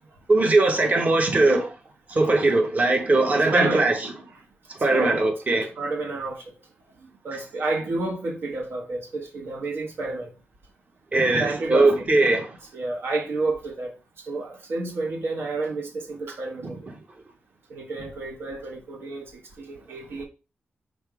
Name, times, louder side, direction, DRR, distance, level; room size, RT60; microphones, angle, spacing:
voice 1, 0.3-1.7 2.1-4.0 4.8-5.7 11.1-12.5 16.6-16.7, right 2 dB, 40° right, 0.9 m, -20 dB
voice 2, 3.5-3.9 4.9-5.3 5.8-6.5 7.0-10.3 11.4-12.0 12.7-16.9 17.7-20.2, right 2 dB, 75° right, 0.8 m, -30 dB
5.1 x 2.0 x 4.6 m
wide cardioid pair, 105°, 4 cm